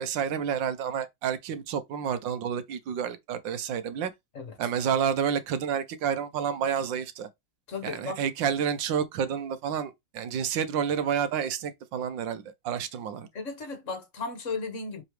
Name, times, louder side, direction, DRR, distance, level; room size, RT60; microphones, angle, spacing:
voice 1, 0.0-4.1 4.6-7.3 7.8-13.3, right 8 dB, 75° right, 1.5 m, -29 dB
voice 2, 7.7-8.2 13.3-15.0, left 4 dB, 40° left, 1.9 m, -35 dB
7.6 x 3.9 x 3.3 m
omnidirectional pair, 2.0 m